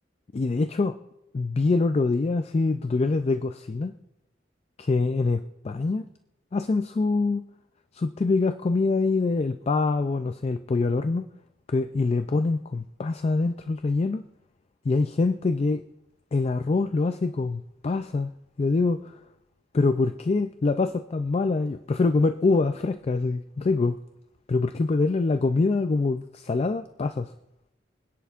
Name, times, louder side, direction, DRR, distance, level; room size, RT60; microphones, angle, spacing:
voice 1, 0.3-1.0 1.3-3.9 4.8-6.1 6.5-7.4 7.9-11.3 11.7-14.2 14.9-15.8 16.3-19.1 19.7-24.0 24.5-27.3, left 3 dB, 35° left, 0.4 m, -25 dB
24.5 x 10.5 x 2.4 m
head